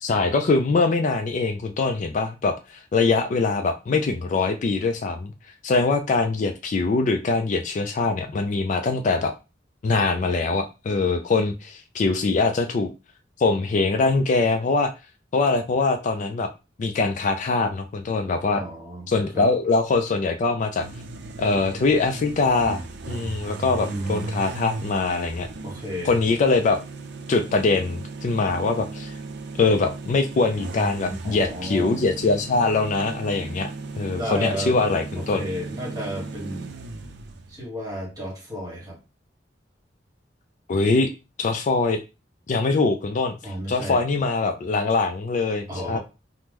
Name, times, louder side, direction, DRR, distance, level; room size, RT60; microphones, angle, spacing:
voice 1, 0.0-5.3 5.6-9.3 9.8-12.9 13.4-14.9 15.3-16.5 16.8-18.6 19.1-20.9 21.4-22.8 23.1-25.5 26.0-26.8 27.3-29.2 29.6-33.7 34.0-35.4 40.7-41.1 41.4-42.0 42.5-46.0, left 3 dB, 40° left, 6 dB, 0.3 m, -23 dB
voice 2, 18.5-19.5 23.8-24.3 25.6-26.2 31.1-32.0 34.2-34.8 35.2-36.8 37.5-39.0 43.4-44.0 45.7-46.0, equal, 20° right, -2 dB, 1.4 m, -33 dB
sound 1, 20.8-37.6, right 3 dB, 60° right, 0.4 m, -36 dB
2.9 x 2.0 x 3.5 m, 0.28 s
head